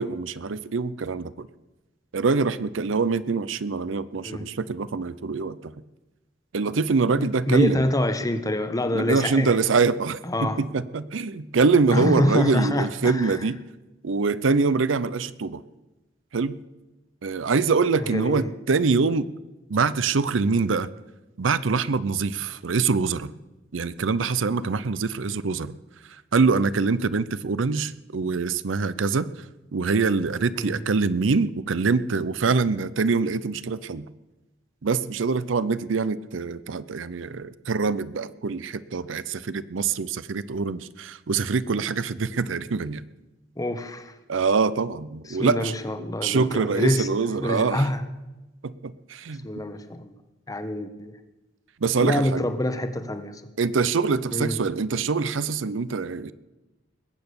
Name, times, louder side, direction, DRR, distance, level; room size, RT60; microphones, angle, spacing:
voice 1, 0.0-1.5 2.1-5.7 6.5-7.9 8.9-13.6 14.0-15.6 16.3-16.6 17.2-19.3 19.7-20.9 21.4-23.3 23.7-25.7 26.3-29.3 29.7-34.0 34.8-43.0 44.3-45.7 46.2-47.9 48.6-49.5 51.8-52.5 53.6-56.3, right 4 dB, 85° right, 16 dB, 0.6 m, -24 dB
voice 2, 4.1-4.5 7.2-9.5 10.2-10.6 11.9-13.4 18.0-18.5 30.5-30.9 43.6-44.1 45.3-47.1 47.4-48.0 49.4-50.1 50.5-51.1 52.0-53.4 54.3-54.6, left 1 dB, 20° left, 10 dB, 1.0 m, -26 dB
20.5 x 8.1 x 6.9 m, 1.1 s
head